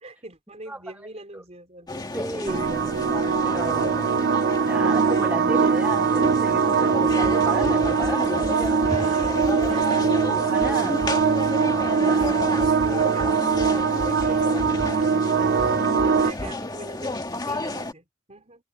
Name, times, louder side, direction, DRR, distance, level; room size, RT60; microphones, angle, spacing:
voice 1, 0.0-2.8 8.8-10.1 10.7-10.8 11.1-13.6 14.0-15.1 16.3-18.6, right 2 dB, 35° right, 4.1 m, -43 dB
voice 2, 0.7-1.0 1.3-1.4 2.1-2.7 3.2-3.9 4.6-9.1 10.5-11.0 11.7-12.4 14.3-14.4 16.2-16.5, right 1 dB, 10° right, 0.8 m, -34 dB
sound 1, 1.9-17.9, left 2 dB, 20° left, 1.7 m, -31 dB
sound 2, 2.5-16.3, right 5 dB, 55° right, 0.5 m, -22 dB
sound 3, 7.1-9.9 10.2-10.3 10.6-11.5 11.8-11.9 12.2-15.1 15.4-16.5, left 1 dB, 65° left, 2.4 m, -37 dB
head